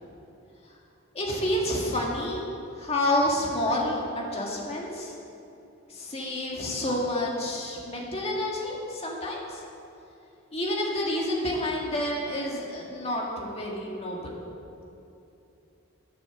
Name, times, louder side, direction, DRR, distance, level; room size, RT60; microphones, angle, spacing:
voice 1, 1.1-5.2 5.9-9.6 10.5-14.3, left 1 dB, 30° left, -2 dB, 1.9 m, -29 dB
13.5 x 6.9 x 7.1 m, 2.8 s
head